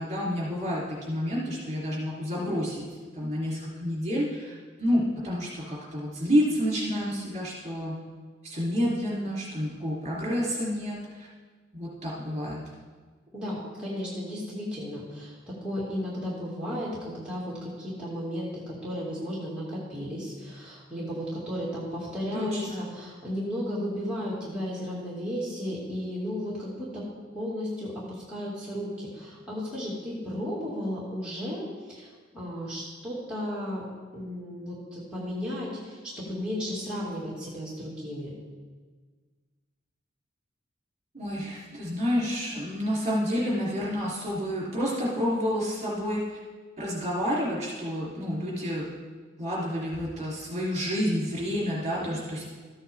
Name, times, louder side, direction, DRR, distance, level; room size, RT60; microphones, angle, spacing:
voice 1, 0.0-2.8 3.1-8.0 8.4-11.3 11.7-12.6 22.3-22.8 41.1-46.4 46.8-48.9 49.4-52.4, equal, 35° right, -5 dB, 3.5 m, -29 dB
voice 2, 13.3-27.1 27.3-32.1 32.3-33.9 34.1-38.3 52.0-52.2, equal, 5° right, -9 dB, 2.4 m, -34 dB
14.0 x 8.5 x 3.6 m, 1.5 s
head